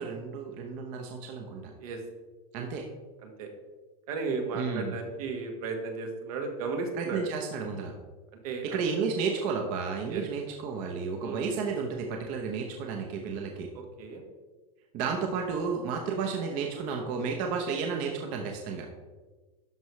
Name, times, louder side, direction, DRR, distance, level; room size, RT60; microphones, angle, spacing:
voice 1, 0.0-1.7 2.5-2.8 4.5-5.0 7.0-7.9 8.6-13.7 14.9-18.9, right 5 dB, 45° right, 2 dB, 0.9 m, -32 dB
voice 2, 3.2-3.5 4.1-7.2 8.3-8.8 10.1-10.2 11.2-11.4 13.7-14.2, right 4 dB, 75° right, 3 dB, 1.6 m, -35 dB
12.0 x 4.7 x 3.2 m, 1.3 s
supercardioid pair, 150°, 19 cm